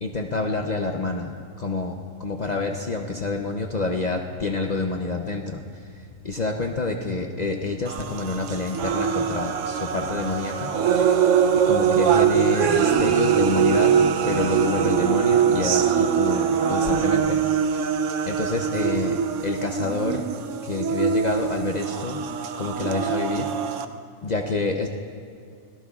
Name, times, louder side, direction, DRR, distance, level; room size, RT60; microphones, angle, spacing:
voice 1, 0.0-11.2 11.5-17.4 17.7-17.8 18.3-20.2 20.6-23.5 24.2-24.9, left 3 dB, 40° left, 2 dB, 0.7 m, -28 dB
sound 1, 3.2-14.8, left 3 dB, 85° left, 2.6 m, -47 dB
sound 2, 7.9-23.9, right 7 dB, 75° right, 1.0 m, -22 dB
26.5 x 18.0 x 2.4 m, 2.2 s
omnidirectional pair, 1.3 m